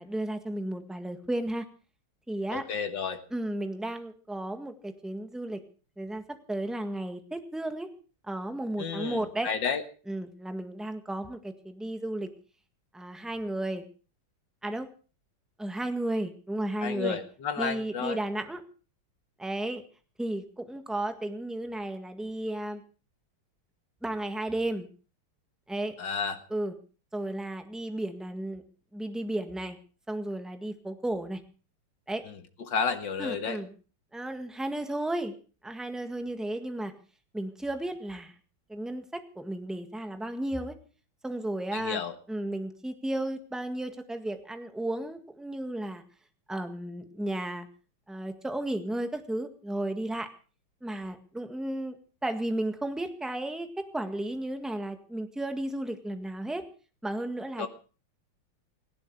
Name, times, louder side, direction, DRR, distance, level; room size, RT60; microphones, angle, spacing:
voice 1, 0.0-1.6 2.3-2.6 3.3-5.6 6.0-6.2 6.5-7.9 8.2-9.5 10.1-12.3 12.9-13.8 14.6-14.9 15.6-17.2 17.6-18.6 19.4-19.8 20.2-22.8 24.0-24.9 25.7-25.9 26.5-26.7 27.1-28.6 28.9-29.8 30.1-31.4 32.1-32.2 33.2-33.7 34.1-35.3 35.6-36.9 37.3-38.3 38.7-40.7 41.2-42.0 42.3-46.0 46.5-47.7 48.1-50.3 50.8-52.0 52.2-56.6 57.0-57.7, right 1 dB, ahead, 7 dB, 1.4 m, -33 dB
voice 2, 2.5-3.2 8.8-9.8 16.8-18.2 26.0-26.4 32.2-33.6 41.7-42.2 57.6-57.7, left 6 dB, 60° left, 8 dB, 2.2 m, -32 dB
18.5 x 16.0 x 4.7 m, 0.38 s
omnidirectional pair, 2.4 m